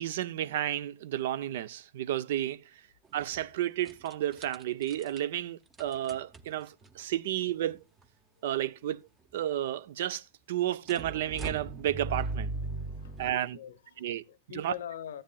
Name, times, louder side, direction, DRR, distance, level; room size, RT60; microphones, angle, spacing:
voice 1, 0.0-2.6 3.1-7.8 8.4-9.0 9.3-12.5 13.2-13.6 14.0-14.2 14.5-14.7, right 12 dB, 65° right, 0.5 m, -32 dB
sound 1, 3.0-3.5 3.9-5.2 5.7-6.9 7.7-7.8 8.0-8.1 10.9-13.3, right 3 dB, 15° right, 0.7 m, -38 dB
voice 2, 12.9-15.2, left 10 dB, 90° left, 0.9 m, -44 dB
13.5 x 10.0 x 2.3 m
supercardioid pair, 155°, 0 cm